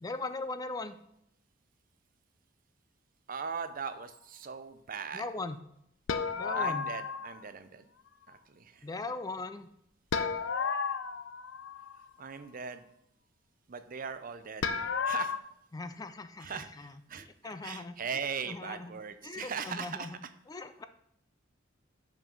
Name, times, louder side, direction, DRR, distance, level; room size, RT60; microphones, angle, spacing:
voice 1, 0.0-1.0 5.1-5.6 6.4-6.9 8.8-9.7 15.7-16.5 16.8-18.0 18.5-18.9 19.2-20.1 20.5-20.9, left 3 dB, 20° left, 11 dB, 0.4 m, -39 dB
voice 2, 3.3-5.2 6.5-7.9 8.3-8.9 12.2-12.8 13.7-14.7 15.0-15.4 16.4-17.3 17.6-20.3, right 6 dB, 45° right, 10 dB, 0.6 m, -39 dB
sound 1, 6.1-7.4 10.1-12.0 14.6-15.4, left 5 dB, 75° left, 0.6 m, -32 dB
6.0 x 5.3 x 6.9 m, 0.78 s
head